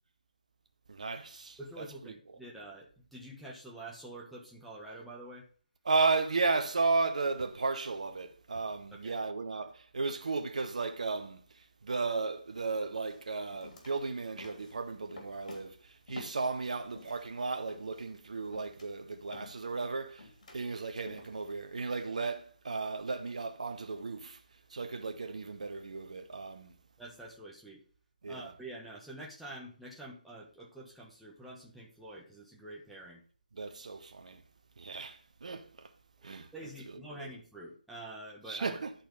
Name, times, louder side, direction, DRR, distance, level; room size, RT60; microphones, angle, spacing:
voice 1, 0.9-1.9 5.8-24.4 24.7-26.7 28.2-28.5 33.5-34.4 34.8-35.9 36.2-37.3 38.5-38.9, right 3 dB, 55° right, 0.9 m, -34 dB
voice 2, 1.6-5.5 8.9-9.1 27.0-27.8 28.3-33.2 36.2-38.8, right 1 dB, ahead, 1.2 m, -47 dB
sound 1, 12.5-12.6 13.0-17.3 17.7-21.7, left 2 dB, 55° left, 2.9 m, -51 dB
10.5 x 4.4 x 5.4 m
figure-of-eight pair, 150°, 5 cm